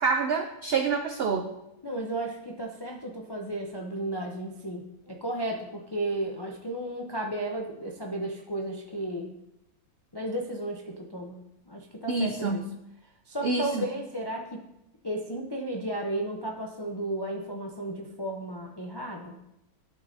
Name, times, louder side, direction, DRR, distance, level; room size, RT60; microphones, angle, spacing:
voice 1, 0.0-1.5 12.1-12.7 13.4-13.7, right 4 dB, 75° right, 5 dB, 0.5 m, -27 dB
voice 2, 1.8-9.3 10.1-11.4 11.7-12.6 13.3-14.6 15.0-19.4, right 1 dB, 40° left, 0 dB, 0.3 m, -34 dB
13.5 x 5.5 x 2.6 m, 0.86 s
omnidirectional pair, 1.6 m